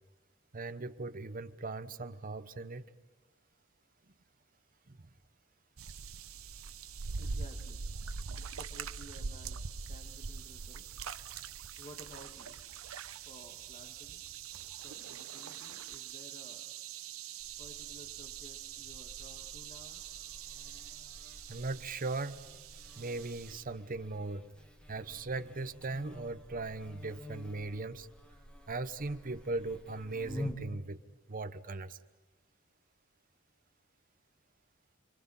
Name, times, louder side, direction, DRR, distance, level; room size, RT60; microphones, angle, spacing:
voice 1, 0.5-2.9 4.9-5.0 21.5-22.4 23.0-24.4 24.9-28.1 28.7-31.0 31.3-32.0, right 3 dB, 40° right, 0.9 m, -38 dB
sound 1, 5.8-23.6, right 6 dB, 90° right, 0.8 m, -44 dB
voice 2, 7.2-7.8 8.6-11.0 11.8-12.6 13.3-14.2 14.7-16.7 17.6-20.0, equal, 35° left, 1.8 m, -55 dB
Buzz, 17.4-30.6, left 1 dB, 5° left, 2.0 m, -49 dB
29.5 x 23.5 x 5.6 m
head